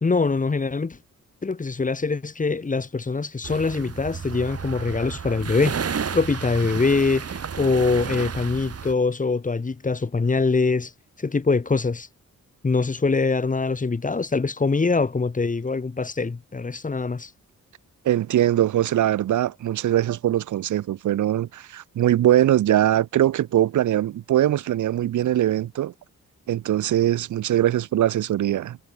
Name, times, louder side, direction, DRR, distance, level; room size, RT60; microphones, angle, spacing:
voice 1, 0.0-1.0 1.4-5.7 6.1-10.9 11.2-12.1 12.6-17.3, left 4 dB, 25° left, 2.2 m, -23 dB
sound 1, 3.4-8.9, right 6 dB, 55° right, 6.4 m, -32 dB
voice 2, 18.0-25.9 26.5-28.8, right 12 dB, 85° right, 0.7 m, -21 dB
wide cardioid pair, 135°, 30 cm